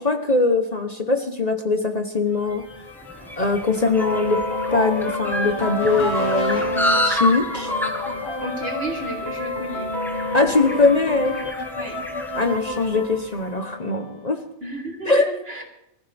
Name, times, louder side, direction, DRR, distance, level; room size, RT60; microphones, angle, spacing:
voice 1, 0.0-2.6 3.4-4.4 4.7-6.6 7.0-7.7 10.3-11.4 12.3-14.4 15.0-15.3, left 3 dB, 35° left, 6 dB, 1.1 m, -21 dB
sound 1, 2.4-14.2, left 2 dB, 70° left, 2.6 m, -29 dB
sound 2, 2.6-13.2, left 1 dB, ahead, 1.4 m, -30 dB
voice 2, 8.4-9.9 11.8-12.0 14.6-15.6, right 1 dB, 60° right, -1 dB, 3.7 m, -32 dB
24.0 x 14.5 x 3.5 m, 0.82 s
omnidirectional pair, 1.2 m